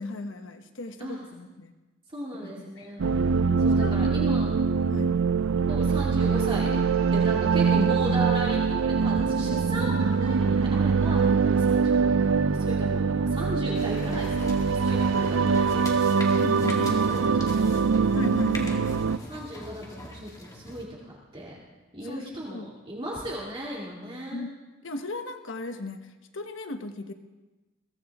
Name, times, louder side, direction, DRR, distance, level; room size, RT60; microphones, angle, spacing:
voice 1, 0.0-1.7 2.4-3.0 3.8-4.3 4.9-5.1 16.3-17.5 18.1-19.0 22.0-22.7 24.3-24.5 24.8-27.1, left 2 dB, 75° left, 7 dB, 1.1 m, -37 dB
voice 2, 2.1-3.2 3.6-4.5 5.7-6.8 7.1-16.2 16.6-17.6 19.3-21.6 21.9-24.4, equal, 25° right, -4 dB, 2.5 m, -36 dB
sound 1, 3.0-19.2, right 5 dB, 85° right, 0.5 m, -23 dB
sound 2, 13.7-20.8, left 1 dB, 20° left, 2.2 m, -41 dB
22.5 x 16.5 x 3.6 m, 1.1 s
head